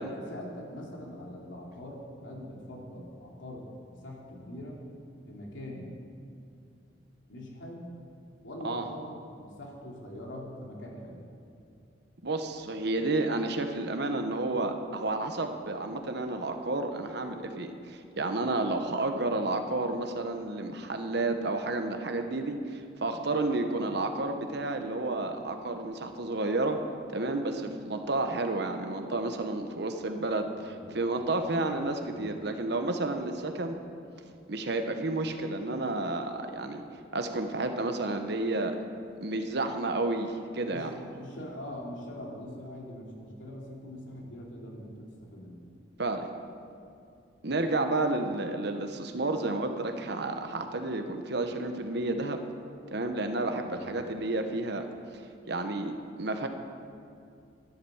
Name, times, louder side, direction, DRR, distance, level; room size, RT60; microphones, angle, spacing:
voice 1, 0.0-4.8 5.3-5.9 7.3-7.9 8.4-11.2 30.5-31.0 31.4-31.7 32.1-32.4 40.6-45.6 53.6-53.9, left 1 dB, 90° left, -2 dB, 3.0 m, -43 dB
voice 2, 12.2-26.8 27.1-33.8 34.5-36.8 37.1-38.8 39.2-40.9 46.0-46.3 47.4-52.4 52.9-54.9 55.1-55.2 55.5-56.5, right 2 dB, 60° right, 6 dB, 1.0 m, -31 dB
12.0 x 11.5 x 7.1 m, 2.5 s
head